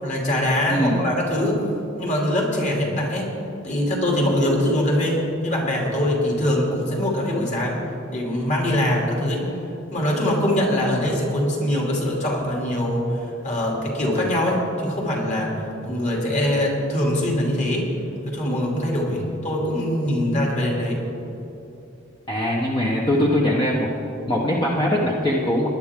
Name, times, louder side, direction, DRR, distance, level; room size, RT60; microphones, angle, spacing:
voice 1, 0.0-1.6 2.0-3.4 3.6-7.8 8.1-9.5 9.9-17.9 18.2-21.0, left 1 dB, 35° left, -2 dB, 2.9 m, -23 dB
voice 2, 0.7-1.0 22.3-23.9 24.3-25.7, left 1 dB, 20° left, -3 dB, 1.1 m, -21 dB
19.5 x 10.5 x 3.7 m, 2.9 s
head